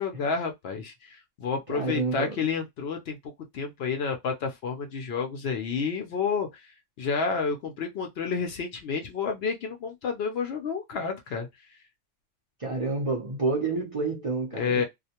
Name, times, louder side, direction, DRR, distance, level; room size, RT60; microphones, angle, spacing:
voice 1, 0.0-3.2 3.5-6.5 7.0-11.5 14.6-14.8, left 5 dB, 65° left, 0.8 m, -30 dB
voice 2, 1.7-2.4 12.6-14.8, right 3 dB, 35° right, 0.6 m, -29 dB
2.4 x 2.1 x 2.8 m
omnidirectional pair, 1.2 m